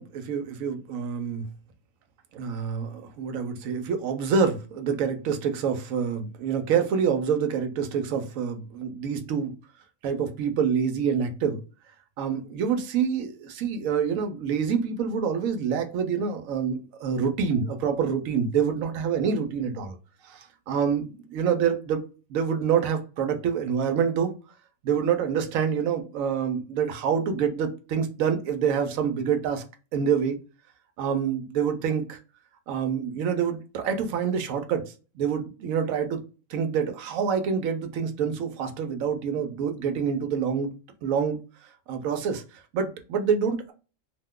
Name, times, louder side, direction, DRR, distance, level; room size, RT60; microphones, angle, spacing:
voice 1, 0.0-1.5 2.3-9.5 10.0-11.6 12.2-20.0 20.2-24.3 24.8-29.6 29.9-30.4 31.0-32.2 32.7-36.2 36.5-40.7 41.0-41.4 41.9-42.4 42.7-43.7, right 7 dB, 80° right, 1.0 m, -26 dB
2.6 x 2.2 x 3.5 m
omnidirectional pair, 1.4 m